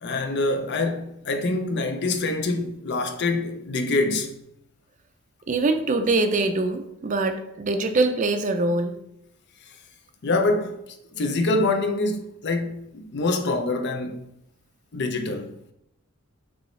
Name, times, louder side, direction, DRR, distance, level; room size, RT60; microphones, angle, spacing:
voice 1, 0.0-4.3 10.2-10.8 11.1-14.3 14.9-15.5, left 2 dB, 55° left, 0.5 m, -25 dB
voice 2, 5.5-9.0, right 2 dB, 35° right, 0.4 m, -23 dB
5.4 x 3.1 x 3.1 m
head